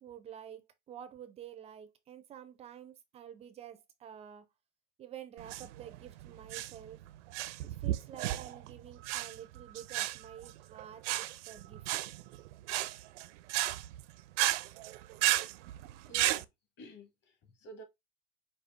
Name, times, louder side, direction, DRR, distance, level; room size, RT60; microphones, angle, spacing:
voice 1, 0.0-4.4 5.0-7.0 7.8-11.8, right 9 dB, 20° right, 0.4 m, -49 dB
sound 1, 5.4-16.4, right 16 dB, 80° right, 0.5 m, -34 dB
voice 2, 16.1-16.5 16.8-17.8, right 1 dB, 30° left, 1.2 m, -51 dB
5.2 x 2.4 x 3.5 m
supercardioid pair, 145°, 36 cm